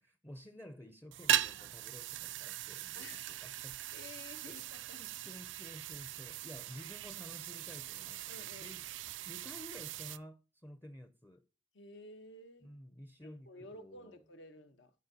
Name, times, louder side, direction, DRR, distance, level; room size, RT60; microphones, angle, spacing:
voice 1, 0.0-3.8 4.5-8.9 9.2-11.4 12.6-14.2, equal, 10° left, 0.5 m, -52 dB
sound 1, 1.1-10.2, right 12 dB, 85° right, 0.4 m, -39 dB
voice 2, 2.9-3.4 3.9-5.0 8.3-8.7 11.7-12.7 13.2-14.9, left 2 dB, 80° left, 1.0 m, -53 dB
11.5 x 4.5 x 2.7 m
head